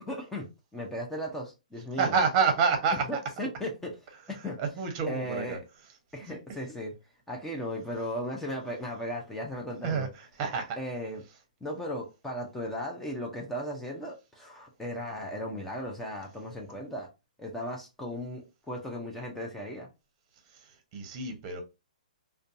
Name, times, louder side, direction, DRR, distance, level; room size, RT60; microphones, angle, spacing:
voice 1, 0.1-0.5 0.7-2.1 3.1-3.9 4.3-4.6 5.1-5.6 6.1-6.9 7.3-10.1 10.8-11.2 11.6-17.1 17.4-19.9, equal, 5° left, 0.5 m, -36 dB
voice 2, 2.0-3.2 4.4-5.6 6.3-6.4 9.8-10.8 20.9-21.6, right 5 dB, 35° right, 0.7 m, -28 dB
2.5 x 2.2 x 2.5 m
hypercardioid pair, 140°, 4 cm